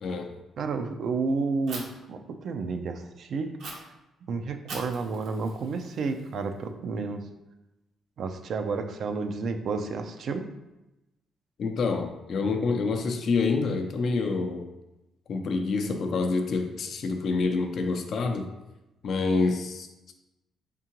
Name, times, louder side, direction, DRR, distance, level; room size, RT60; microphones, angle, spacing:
voice 1, 0.0-0.4 11.6-14.7 15.3-18.5 19.0-19.9, left 4 dB, 60° left, 5 dB, 0.5 m, -27 dB
voice 2, 0.6-3.5 4.3-7.2 8.2-10.4, right 4 dB, 65° right, 7 dB, 0.4 m, -31 dB
Fire, 1.7-1.8 3.6-3.7 4.7-6.6, right 3 dB, 80° right, 0.9 m, -42 dB
3.7 x 3.6 x 2.9 m, 0.97 s
cardioid pair, 90°, 0 cm